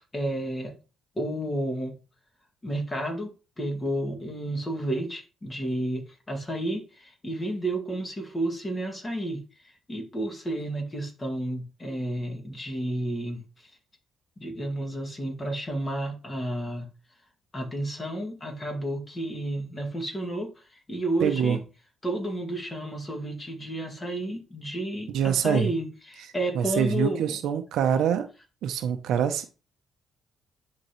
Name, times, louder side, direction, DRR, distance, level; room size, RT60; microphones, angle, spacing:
voice 1, 0.1-0.7 1.2-1.9 2.6-3.3 3.6-9.4 9.9-13.4 14.4-16.9 17.5-20.5 20.9-21.6 22.0-27.3, right 1 dB, 25° left, 2.3 m, -31 dB
voice 2, 21.2-21.6 25.1-25.7 26.5-28.3 28.6-29.5, right 8 dB, 80° right, 0.7 m, -25 dB
11.0 x 3.7 x 3.1 m
cardioid pair, 90°, 0 cm